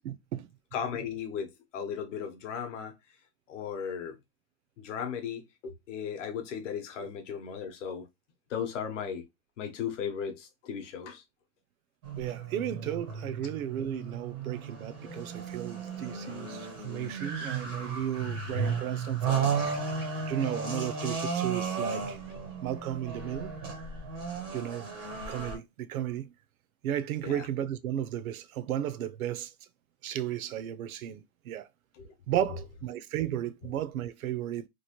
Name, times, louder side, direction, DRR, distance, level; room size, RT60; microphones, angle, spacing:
voice 1, 0.0-0.5 7.0-7.1 12.2-19.5 20.3-22.2 22.6-23.6 24.5-24.9 25.3-26.3 26.8-29.5 30.0-31.7 32.3-34.7, right 11 dB, 70° right, 0.6 m, -34 dB
voice 2, 0.7-2.9 3.5-4.2 4.8-8.1 8.5-9.2 9.6-11.2 27.2-27.5 32.0-32.1, left 7 dB, 55° left, 0.8 m, -36 dB
sound 1, 12.0-25.5, right 5 dB, 15° right, 0.5 m, -34 dB
3.0 x 2.5 x 2.9 m
hypercardioid pair, 165°, 44 cm